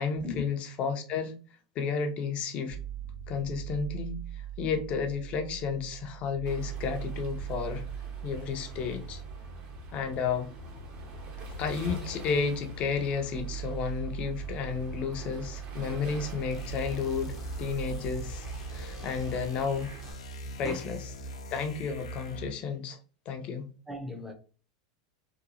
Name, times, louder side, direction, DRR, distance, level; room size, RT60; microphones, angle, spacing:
voice 1, 0.0-1.4 1.8-2.8 3.3-7.8 8.2-9.2 9.9-10.5 11.6-18.5 18.7-19.9 20.6-21.0 21.5-23.0 23.3-23.7, left 5 dB, 40° left, 0.6 m, -32 dB
sound 1, 2.7-20.6, right 8 dB, 70° right, 0.8 m, -41 dB
Waves surf, 6.4-20.1, left 1 dB, 45° right, 0.9 m, -46 dB
voice 2, 11.0-11.6 20.5-20.9 23.9-24.3, left 3 dB, 5° right, 0.7 m, -41 dB
sound 2, 16.5-22.6, right 1 dB, 90° left, 0.5 m, -41 dB
2.8 x 2.3 x 2.6 m
hypercardioid pair, 110°, 3 cm